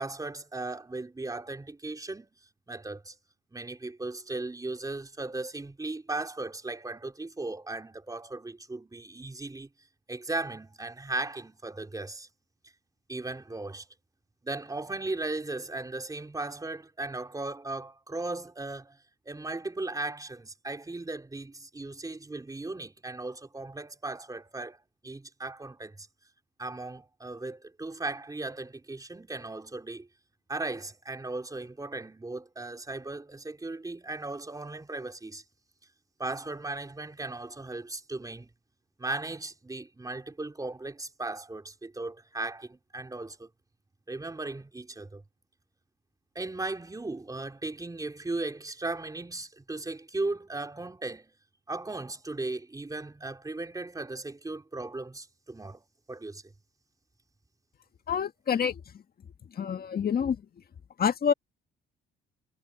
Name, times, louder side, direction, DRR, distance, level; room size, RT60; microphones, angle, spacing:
voice 1, 0.0-2.3 2.7-3.2 3.5-9.7 10.1-12.3 13.1-13.9 14.4-19.0 19.3-24.8 25.0-26.1 26.6-30.1 30.5-35.4 36.2-38.5 39.0-43.5 44.1-45.2 46.4-51.3 51.7-56.4, right 2 dB, 20° right, 3.7 m, -37 dB
voice 2, 58.1-58.8 59.5-60.4 61.0-61.3, left 7 dB, 50° left, 1.8 m, -27 dB
cardioid pair, 90°, 20 cm